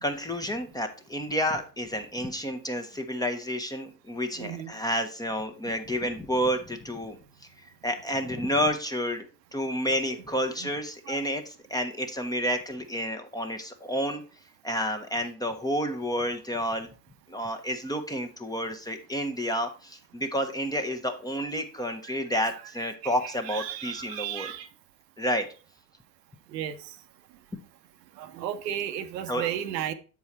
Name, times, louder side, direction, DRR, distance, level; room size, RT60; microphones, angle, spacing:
voice 1, 0.0-7.2 7.8-9.3 9.5-14.2 14.6-16.9 17.3-24.5 25.2-25.4 29.3-29.5, equal, 10° left, 5 dB, 1.0 m, -30 dB
voice 2, 4.4-4.7 5.7-5.8 10.3-10.7 11.1-11.2 22.0-22.4 22.8-24.7 26.5-27.0 28.2-29.9, right 10 dB, 75° right, 11 dB, 0.7 m, -35 dB
7.4 x 4.6 x 4.2 m, 0.37 s
hypercardioid pair, 70°, 50 cm